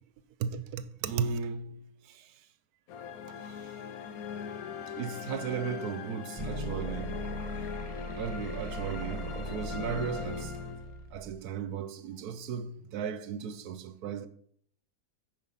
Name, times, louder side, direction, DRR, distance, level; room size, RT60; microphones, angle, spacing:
voice 1, 0.4-2.5 3.4-3.8 4.9-7.2 8.1-10.6 11.1-14.3, right 6 dB, 75° right, 1.2 m, -36 dB
sound 1, 2.9-11.2, left 7 dB, 70° left, 1.1 m, -41 dB
sound 2, 6.4-11.4, equal, 20° right, 1.4 m, -39 dB
9.0 x 5.5 x 5.5 m
omnidirectional pair, 1.7 m